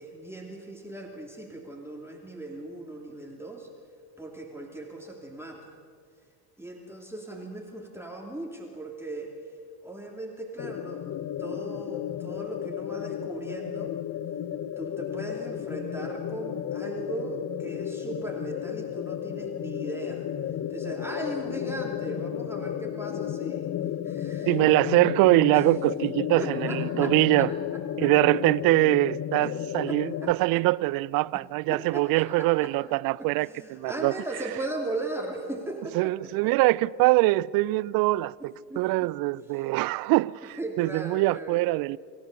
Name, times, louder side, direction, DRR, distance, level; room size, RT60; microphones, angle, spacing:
voice 1, 0.0-3.7 4.2-5.8 6.6-9.3 9.8-13.9 14.8-20.3 20.7-23.7 24.0-24.7 25.5-25.6 26.4-28.1 29.4-29.6 29.9-30.6 31.7-32.7 33.2-36.7 38.4-39.1 40.4-41.7, right 2 dB, 5° right, 0 dB, 2.8 m, -38 dB
sound 1, 10.6-30.3, left 10 dB, 35° left, 0.8 m, -33 dB
voice 2, 24.5-27.5 28.0-34.1 35.9-42.0, right 20 dB, 50° right, 23 dB, 0.6 m, -23 dB
27.5 x 15.0 x 7.0 m, 2.1 s
hypercardioid pair, 65°, 47 cm